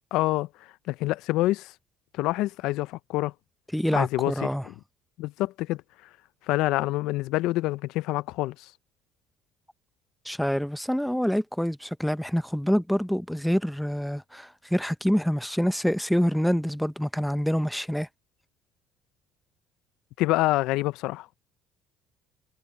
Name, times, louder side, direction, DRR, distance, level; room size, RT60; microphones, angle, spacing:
voice 1, 0.1-1.7 2.1-3.3 3.9-4.7 5.2-5.8 6.5-8.7 20.2-21.3, left 18 dB, 75° left, 0.4 m, -27 dB
voice 2, 3.7-4.7 10.2-18.1, equal, ahead, 0.7 m, -26 dB
cardioid pair, 105°, 0 cm